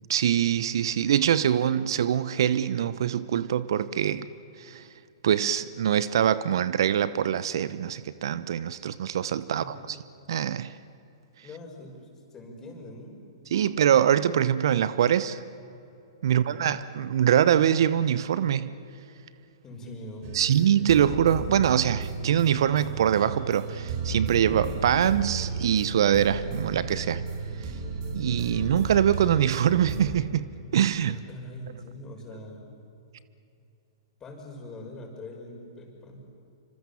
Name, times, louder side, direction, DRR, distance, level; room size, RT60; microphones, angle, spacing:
voice 1, 0.1-4.3 4.6-4.9 5.2-9.8 10.3-10.8 13.5-15.4 16.2-18.7 20.3-27.2 27.6-27.7 28.1-30.5 30.7-31.2, right 9 dB, 65° right, 0.8 m, -24 dB
voice 2, 9.5-9.8 11.4-12.0 12.3-13.2 16.2-16.6 19.6-20.3 31.1-32.7 34.2-36.3, left 1 dB, 20° left, 6.2 m, -43 dB
sound 1, 20.2-30.2, right 4 dB, 45° right, 4.1 m, -34 dB
27.0 x 26.0 x 7.2 m
hypercardioid pair, 120°, 3 cm